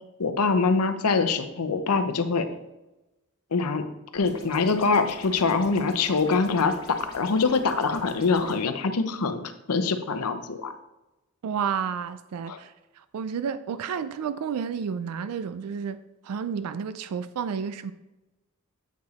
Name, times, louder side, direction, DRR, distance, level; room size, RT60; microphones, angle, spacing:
voice 1, 0.2-2.5 3.5-3.8 4.1-9.4 9.7-10.7 12.5-12.6, left 4 dB, 90° left, 8 dB, 0.7 m, -24 dB
sound 1, 4.2-8.6, left 1 dB, 20° left, 1.7 m, -45 dB
voice 2, 11.4-12.7 13.1-16.0 16.2-17.9, right 7 dB, 85° right, 12 dB, 0.4 m, -31 dB
8.1 x 4.8 x 4.1 m, 0.99 s
head